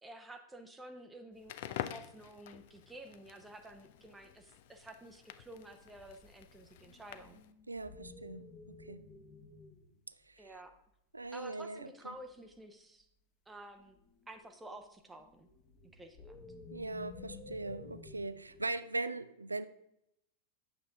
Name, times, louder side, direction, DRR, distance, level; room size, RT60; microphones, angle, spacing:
voice 1, 0.0-7.4 10.4-10.7 11.3-13.1 13.5-14.0 14.3-15.5 15.9-16.5, right 1 dB, 10° right, 5 dB, 0.7 m, -51 dB
Crackle, 1.4-7.5, left 12 dB, 55° left, 0.4 m, -47 dB
sound 1, 3.9-4.4 5.8-9.9 10.5-10.6 11.3-12.5 13.8-18.6, left 3 dB, 35° left, 1.3 m, -53 dB
voice 2, 7.7-9.0 10.3-10.5 11.1-12.1 16.7-19.7, right 2 dB, 80° right, 14 dB, 0.3 m, -40 dB
8.7 x 6.8 x 3.5 m, 0.80 s
figure-of-eight pair, 90°, 0 cm